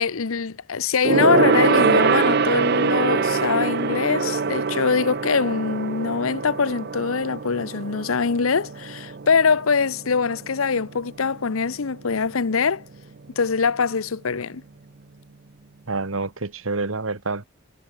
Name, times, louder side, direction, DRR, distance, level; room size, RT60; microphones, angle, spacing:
voice 1, 0.0-12.8 13.4-14.6, left 5 dB, 85° left, 0.8 m, -23 dB
Gong, 1.0-10.8 11.1-11.4 11.7-11.8, right 4 dB, 50° right, 0.6 m, -23 dB
voice 2, 15.9-17.4, right 3 dB, 80° right, 1.6 m, -27 dB
head